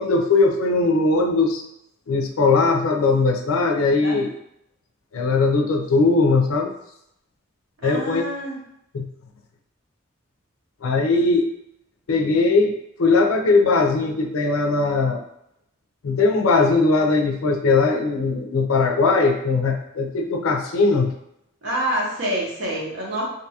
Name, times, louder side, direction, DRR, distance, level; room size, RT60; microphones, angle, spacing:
voice 1, 0.0-1.6 2.1-4.3 5.1-6.7 7.8-8.2 8.9-9.0 10.8-11.5 12.1-15.2 16.0-21.1, left 3 dB, 75° left, 3 dB, 0.4 m, -19 dB
voice 2, 7.8-8.6 21.6-23.2, right 1 dB, 55° right, -4 dB, 0.8 m, -27 dB
2.6 x 2.3 x 2.7 m, 0.78 s
head